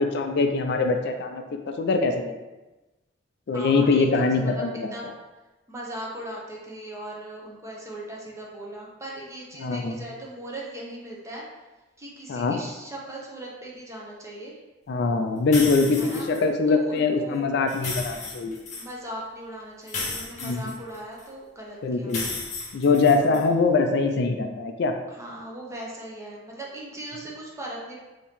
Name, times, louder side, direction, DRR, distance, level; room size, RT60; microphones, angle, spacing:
voice 1, 0.0-1.4 1.8-2.3 3.5-4.9 9.6-10.0 12.3-12.6 14.9-18.6 20.4-20.6 21.8-22.3 22.7-24.9, left 4 dB, 65° left, 5 dB, 0.4 m, -23 dB
voice 2, 3.5-5.1 5.7-11.4 12.0-14.6 16.0-17.5 18.8-22.1 23.3-23.7 25.1-28.0, right 1 dB, 15° right, -3 dB, 0.8 m, -39 dB
sound 1, 15.5-16.4 17.7-18.9 19.9-21.2 22.1-23.4, left 3 dB, 40° left, 0.9 m, -34 dB
4.4 x 2.8 x 3.5 m, 1.1 s
head